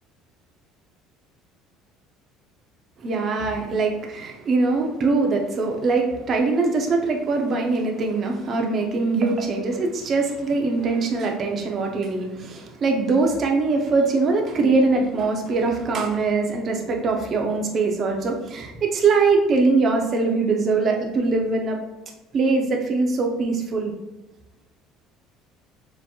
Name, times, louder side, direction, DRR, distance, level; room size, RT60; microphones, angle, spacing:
voice 1, 3.0-21.8 22.3-23.9, right 3 dB, 30° right, 1 dB, 0.6 m, -22 dB
6.6 x 2.9 x 2.3 m, 1.0 s
cardioid pair, 170°, 0 cm